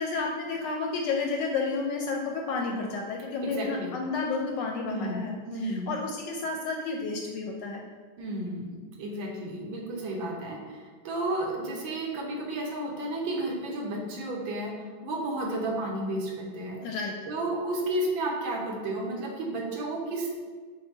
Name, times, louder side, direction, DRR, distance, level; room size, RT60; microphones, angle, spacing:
voice 1, 0.0-5.4 5.6-7.8 16.8-17.1, left 4 dB, 75° left, 0 dB, 1.1 m, -31 dB
voice 2, 3.4-3.9 4.8-5.9 8.2-16.8 17.3-20.3, right 1 dB, 75° right, -1 dB, 1.5 m, -32 dB
5.6 x 2.1 x 4.4 m, 1.5 s
omnidirectional pair, 2.2 m